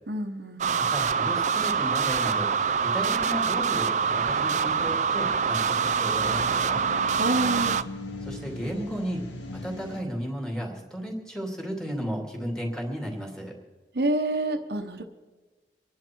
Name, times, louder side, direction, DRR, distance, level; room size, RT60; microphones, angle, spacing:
voice 1, 0.1-0.9 7.2-7.8 13.9-15.0, right 2 dB, 60° right, 4 dB, 1.1 m, -28 dB
sound 1, 0.6-7.8, right 6 dB, 40° right, 0.4 m, -25 dB
voice 2, 0.8-2.5 2.8-6.8 8.2-9.2 9.5-13.5, equal, 5° left, 0 dB, 2.8 m, -34 dB
sound 2, 3.1-10.0, left 2 dB, 90° left, 1.7 m, -41 dB
25.5 x 11.0 x 4.6 m, 1.2 s
head